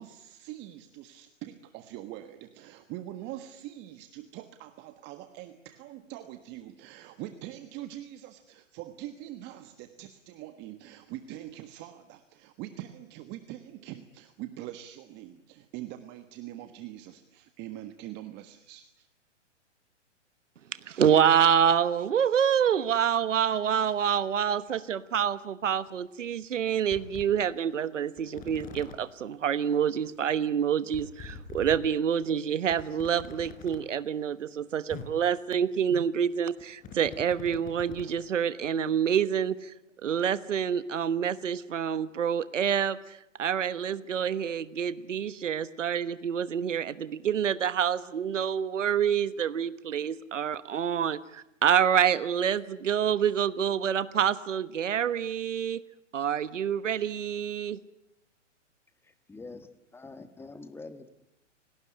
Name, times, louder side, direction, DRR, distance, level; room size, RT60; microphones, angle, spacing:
voice 1, 0.0-19.1, right 13 dB, 30° right, 9 dB, 1.5 m, -43 dB
voice 2, 20.9-39.7 40.0-55.8 56.1-57.8, right 8 dB, 80° right, 15 dB, 1.3 m, -27 dB
sound 1, 24.7-24.8 25.9-26.0 26.4-26.5 26.9-27.3 28.2-28.9 30.1-30.2 30.4-30.5 30.9-31.8 32.2-32.3 32.7-33.8 34.6-34.7 34.9-35.1 36.3-38.1 38.6-38.7, left 5 dB, 20° left, 4.5 m, -44 dB
voice 3, 59.0-61.1, left 3 dB, 5° left, 11 dB, 1.5 m, -45 dB
28.5 x 18.5 x 9.9 m, 0.86 s
hypercardioid pair, 130°, 37 cm